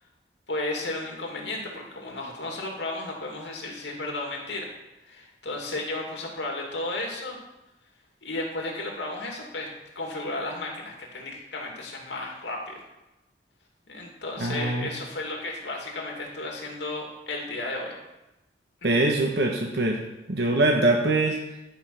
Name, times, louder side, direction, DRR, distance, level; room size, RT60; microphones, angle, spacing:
voice 1, 0.5-4.7 5.0-7.4 8.2-9.7 9.9-12.8 13.9-18.0 18.8-19.0, left 2 dB, 85° left, 0 dB, 2.5 m, -33 dB
voice 2, 14.4-14.9 18.8-20.0 20.3-21.4, right 2 dB, 65° right, 0 dB, 1.1 m, -23 dB
12.0 x 5.7 x 5.8 m, 0.97 s
head